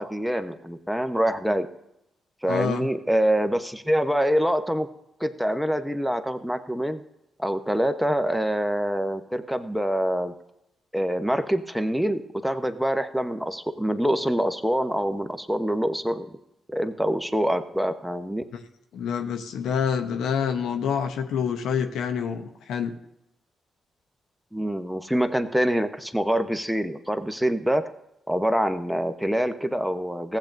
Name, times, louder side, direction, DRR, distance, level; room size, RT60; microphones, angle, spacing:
voice 1, 0.0-1.7 2.4-4.9 5.2-7.0 7.4-10.3 10.9-16.4 16.7-18.4 24.5-27.9 28.3-30.4, equal, ahead, 8 dB, 1.0 m, -25 dB
voice 2, 2.5-2.9 18.9-22.9, left 7 dB, 80° left, 7 dB, 0.8 m, -27 dB
15.0 x 8.7 x 2.6 m, 0.82 s
supercardioid pair, 50°, 0 cm